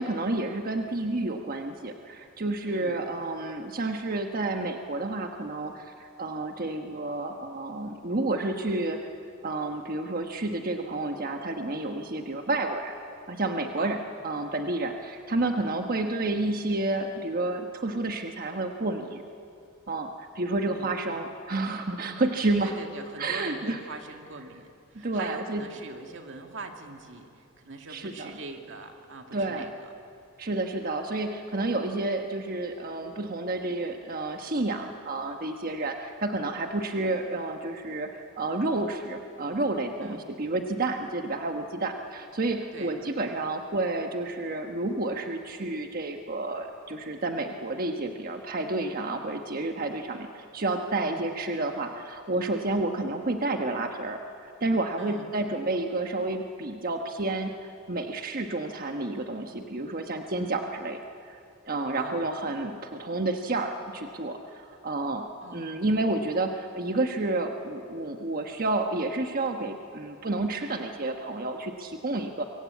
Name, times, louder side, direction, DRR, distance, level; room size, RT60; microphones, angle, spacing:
voice 1, 0.0-9.0 9.4-13.0 13.3-19.2 19.9-22.7 23.2-23.8 24.9-25.6 27.9-28.3 29.3-29.7 30.4-57.5 57.9-61.4 61.7-65.3 65.5-72.4, right 2 dB, 45° right, 4 dB, 1.2 m, -30 dB
voice 2, 2.6-3.0 13.8-14.0 20.6-20.9 22.0-22.2 22.6-29.9 40.0-40.3 42.7-43.0 51.0-51.2 55.0-55.3 61.9-62.3 65.4-65.8, right 2 dB, 65° right, 4 dB, 2.4 m, -42 dB
25.5 x 23.5 x 8.5 m, 2.5 s
head